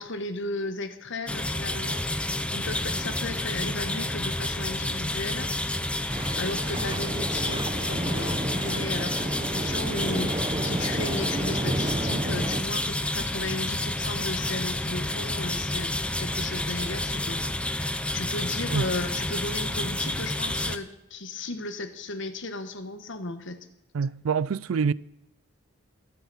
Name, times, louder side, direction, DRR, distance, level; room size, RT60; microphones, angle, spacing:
voice 1, 0.0-5.5 5.9-23.6, left 2 dB, 60° left, 1.3 m, -35 dB
sound 1, 1.3-20.8, left 1 dB, 5° left, 0.6 m, -30 dB
sound 2, 6.1-12.6, right 1 dB, 25° right, 0.8 m, -31 dB
voice 2, 23.9-24.9, right 6 dB, 80° right, 0.4 m, -26 dB
23.5 x 8.0 x 4.2 m
head